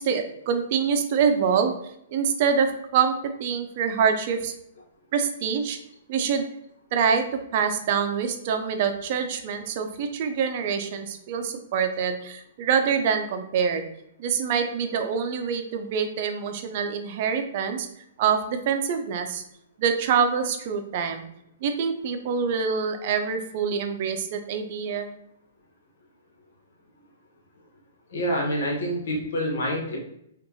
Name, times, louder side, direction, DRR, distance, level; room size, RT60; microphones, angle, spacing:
voice 1, 0.0-1.7 2.1-3.1 3.4-4.5 5.1-5.8 6.1-6.4 6.9-7.3 7.5-13.8 14.2-17.9 18.2-19.4 19.8-21.2 21.6-25.1, right 6 dB, 50° right, 6 dB, 0.6 m, -25 dB
voice 2, 28.1-30.0, equal, 65° left, 0 dB, 1.3 m, -27 dB
5.3 x 2.6 x 2.9 m, 0.76 s
hypercardioid pair, 120°, 0 cm